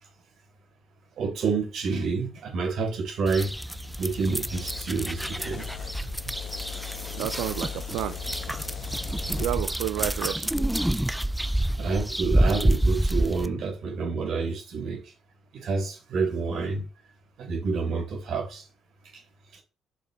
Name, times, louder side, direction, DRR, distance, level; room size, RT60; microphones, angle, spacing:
voice 1, 1.2-3.5 4.0-5.7 11.8-15.0 15.5-16.8 17.4-18.6, right 4 dB, 60° right, 4.5 m, -28 dB
sound 1, 3.3-13.5, right 1 dB, 5° right, 0.4 m, -28 dB
sound 2, 3.7-9.5, left 10 dB, 60° left, 1.4 m, -39 dB
voice 2, 7.1-8.2 9.4-10.7, right 13 dB, 90° right, 0.5 m, -31 dB
7.5 x 5.4 x 4.3 m
cardioid pair, 115°, 0 cm